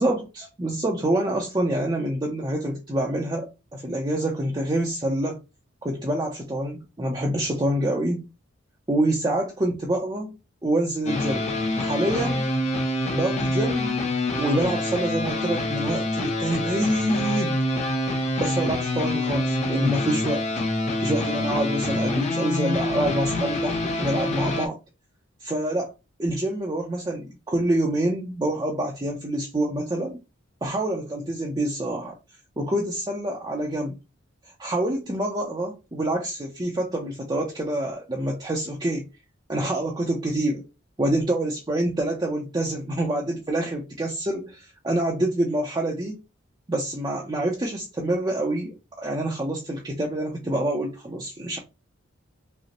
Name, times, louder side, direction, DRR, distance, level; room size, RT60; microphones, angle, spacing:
voice 1, 0.0-5.4 5.8-8.3 8.9-10.4 10.6-11.5 11.8-12.5 13.1-14.0 14.3-17.6 18.4-20.5 21.0-24.8 25.4-25.9 26.2-30.2 30.6-32.2 32.6-33.9 34.6-39.1 39.5-40.6 41.0-46.2 46.7-51.6, right 1 dB, 20° right, 0.5 m, -26 dB
sound 1, 11.1-24.7, left 1 dB, 35° left, 0.7 m, -26 dB
5.0 x 2.1 x 2.9 m
head